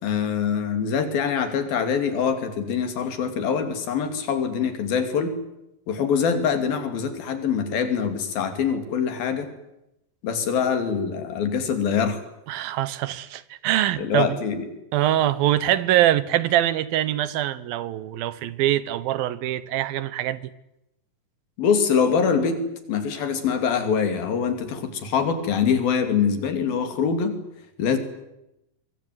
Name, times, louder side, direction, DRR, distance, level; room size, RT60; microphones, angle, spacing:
voice 1, 0.0-5.4 5.9-9.5 10.2-12.2 14.0-14.6 21.6-22.6 22.9-27.4 27.8-28.0, left 6 dB, 80° left, 4.6 m, -24 dB
voice 2, 12.5-14.4 14.9-20.5, right 13 dB, 80° right, 2.9 m, -23 dB
24.0 x 23.5 x 9.4 m
omnidirectional pair, 4.1 m